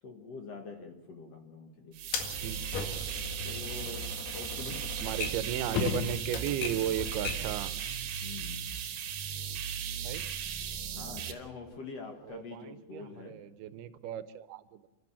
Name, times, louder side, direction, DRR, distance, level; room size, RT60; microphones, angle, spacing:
voice 1, 0.0-2.0 3.4-4.1 4.3-4.8 5.2-5.3 5.6-5.7 8.2-8.7 10.9-13.4, left 4 dB, 50° left, 3 dB, 2.3 m, -45 dB
sound 1, 1.9-11.3, right 8 dB, 65° right, 2.7 m, -37 dB
Typewriter, 2.1-7.6, left 5 dB, 85° left, 4.0 m, -40 dB
voice 2, 5.0-7.7 10.0-10.2 12.3-14.8, right 11 dB, 85° right, 12 dB, 2.8 m, -35 dB
sound 2, 5.6-6.9 11.7-11.8, left 9 dB, 70° left, 1.8 m, -34 dB
29.5 x 13.0 x 7.3 m, 1.0 s
omnidirectional pair, 4.4 m